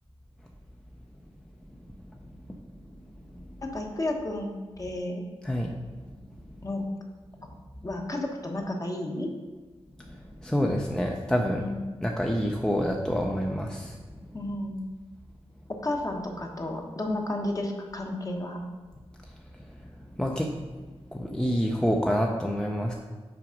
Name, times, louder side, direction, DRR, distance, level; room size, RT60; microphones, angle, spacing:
voice 1, 3.6-5.2 6.6-6.8 7.8-9.3 11.6-11.8 14.3-14.8 15.8-18.6, left 1 dB, 30° left, 1 dB, 1.1 m, -32 dB
voice 2, 5.4-5.7 10.0-11.7 12.0-14.0 20.2-20.7 21.1-22.9, equal, 5° left, 1 dB, 0.6 m, -27 dB
6.0 x 4.7 x 5.1 m, 1.3 s
wide cardioid pair, 95°, 11 cm